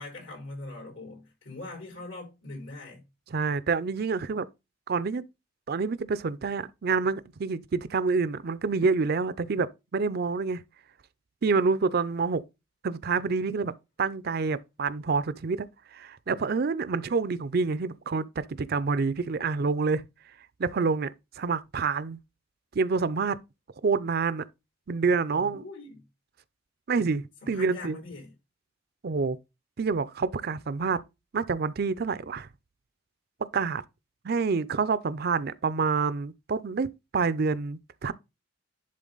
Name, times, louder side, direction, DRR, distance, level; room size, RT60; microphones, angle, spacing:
voice 1, 0.0-3.0 25.3-26.0 27.4-28.3, left 2 dB, 75° left, 5.1 m, -42 dB
voice 2, 3.3-4.5 4.9-5.2 5.7-9.7 9.9-10.6 11.4-12.4 12.8-13.7 14.0-15.7 15.9-20.0 20.6-21.1 21.4-22.2 22.7-23.4 23.8-24.4 24.9-25.6 26.9-28.0 29.0-29.4 29.8-31.0 31.3-32.5 33.5-33.8 34.2-38.1, right 4 dB, 50° right, 0.5 m, -27 dB
11.0 x 3.8 x 3.9 m
head